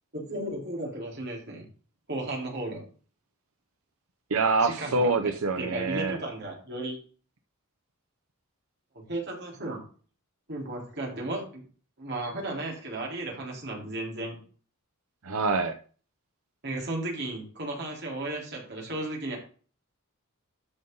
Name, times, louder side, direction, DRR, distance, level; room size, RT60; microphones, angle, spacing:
voice 1, 0.1-1.6 2.1-2.8 4.6-5.1 5.6-7.0 8.9-9.8 10.5-11.6 12.0-14.4 16.6-19.4, right 2 dB, 50° right, -1 dB, 3.9 m, -34 dB
voice 2, 4.3-6.2 15.2-15.7, right 3 dB, 85° right, 6 dB, 0.8 m, -25 dB
13.0 x 5.5 x 3.9 m, 0.39 s
head